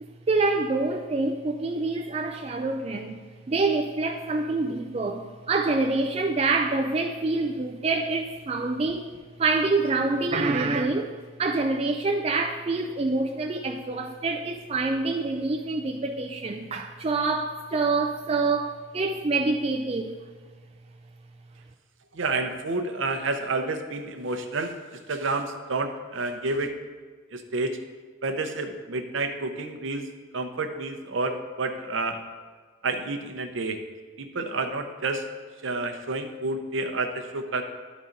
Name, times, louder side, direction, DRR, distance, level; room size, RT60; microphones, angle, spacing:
voice 1, 0.0-3.2 3.5-9.1 9.4-11.1 11.4-20.2, right 3 dB, 30° right, 3 dB, 0.3 m, -26 dB
voice 2, 22.1-24.7 25.1-26.7 27.3-27.8 28.2-30.1 30.3-32.2 32.8-33.8 34.2-35.2 35.6-37.6, right 3 dB, 65° right, 6 dB, 0.7 m, -29 dB
11.5 x 4.1 x 3.8 m, 1.5 s
head